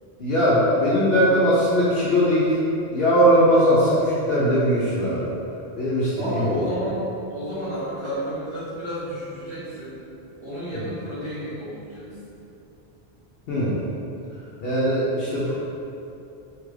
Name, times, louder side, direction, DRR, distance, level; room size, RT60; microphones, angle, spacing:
voice 1, 0.2-2.6 2.9-5.3 5.8-6.6 10.7-10.8 13.5-13.8 14.6-15.5, equal, 70° left, -8 dB, 0.8 m, -20 dB
voice 2, 6.2-7.0 7.3-9.9 10.4-12.2, equal, 30° right, -11 dB, 0.8 m, -31 dB
2.9 x 2.4 x 3.1 m, 2.8 s
omnidirectional pair, 1.1 m